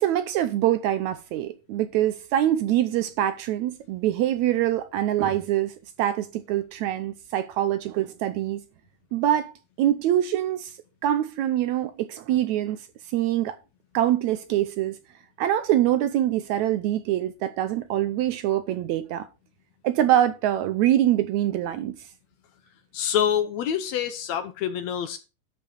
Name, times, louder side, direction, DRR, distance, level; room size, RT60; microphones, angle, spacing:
voice 1, 0.0-8.6 9.1-9.5 9.8-10.7 11.0-12.8 13.1-13.6 13.9-15.0 15.4-19.3 19.8-22.0, right 12 dB, 75° right, 1.8 m, -24 dB
voice 2, 22.9-25.2, left 9 dB, 70° left, 1.9 m, -26 dB
12.0 x 5.5 x 5.3 m
omnidirectional pair, 3.7 m